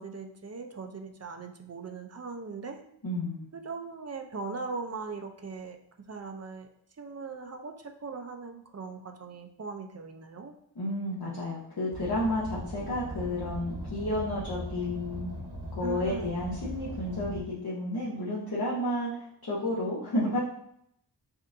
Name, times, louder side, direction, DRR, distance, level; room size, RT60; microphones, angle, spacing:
voice 1, 0.0-2.8 3.5-5.8 6.1-6.7 7.0-10.5 15.8-16.3, right 4 dB, 35° right, 5 dB, 0.5 m, -39 dB
voice 2, 3.0-3.5 10.8-15.3 15.7-20.4, left 1 dB, 55° left, -7 dB, 0.9 m, -31 dB
Car, 11.9-17.4, equal, 60° right, 1.1 m, -39 dB
5.3 x 2.6 x 2.6 m, 0.72 s
wide cardioid pair, 70°, 44 cm